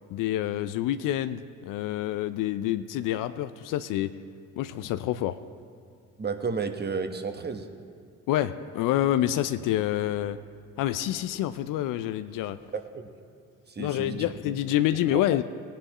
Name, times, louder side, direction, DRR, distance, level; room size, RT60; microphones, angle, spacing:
voice 1, 0.1-4.1 4.6-5.4 8.3-10.4 10.8-12.6 13.8-15.4, left 13 dB, 60° left, 11 dB, 0.6 m, -27 dB
voice 2, 6.2-7.7 9.6-9.7 12.7-13.1 13.7-14.5 15.1-15.2, right 5 dB, 25° right, 6 dB, 1.2 m, -32 dB
19.0 x 10.0 x 3.1 m, 2.2 s
hypercardioid pair, 55°, 36 cm